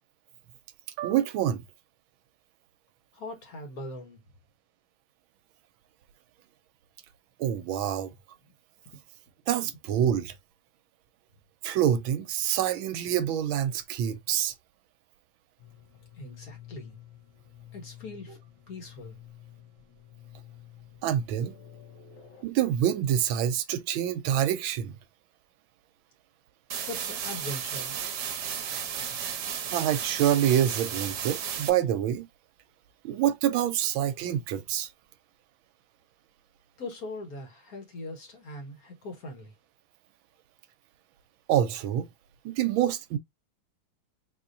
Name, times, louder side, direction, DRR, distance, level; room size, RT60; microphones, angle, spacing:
voice 1, 1.0-1.6 7.4-8.1 9.5-10.3 11.6-14.5 21.0-21.5 22.4-24.9 29.7-32.3 33.0-34.9 41.5-42.1 42.4-43.2, right 10 dB, 80° right, 1.4 m, -26 dB
voice 2, 3.1-4.2 8.5-8.6 16.1-17.0 17.7-18.4 18.7-19.2 26.9-28.0 36.8-39.5, left 2 dB, 50° left, 1.4 m, -41 dB
sound 1, 15.6-22.4, left 11 dB, 80° left, 1.8 m, -50 dB
sound 2, 26.7-31.7, right 8 dB, 65° right, 1.2 m, -33 dB
4.2 x 2.8 x 2.5 m
omnidirectional pair, 2.2 m